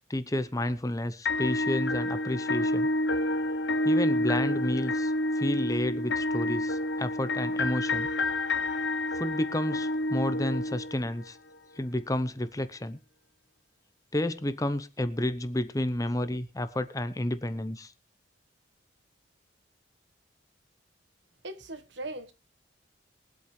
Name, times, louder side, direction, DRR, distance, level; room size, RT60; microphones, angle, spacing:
voice 1, 0.1-2.9 3.8-8.1 9.2-11.4 11.8-13.0 14.1-17.9, left 1 dB, 20° left, 0.8 m, -31 dB
sound 1, 1.3-11.3, left 1 dB, 75° left, 0.8 m, -29 dB
voice 2, 21.4-22.3, right 2 dB, 75° right, 1.3 m, -39 dB
22.5 x 8.3 x 3.2 m
head